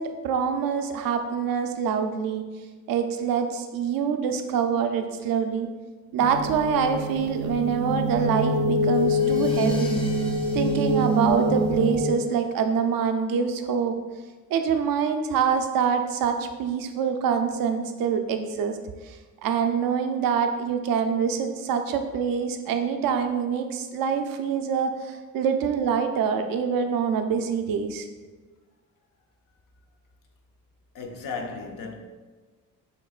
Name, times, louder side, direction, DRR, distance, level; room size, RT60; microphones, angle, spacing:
voice 1, 0.0-2.4 2.9-5.7 6.1-10.0 10.5-13.9 14.5-18.8 19.1-19.2 19.4-28.1, right 6 dB, 85° right, 0.5 m, -25 dB
sound 1, 6.2-12.1, left 1 dB, 35° right, 0.4 m, -25 dB
Crash cymbal, 8.8-12.6, left 1 dB, 15° left, 0.7 m, -44 dB
voice 2, 30.9-32.0, left 4 dB, 70° left, 0.7 m, -34 dB
6.6 x 3.0 x 2.4 m
cardioid pair, 105°, 34 cm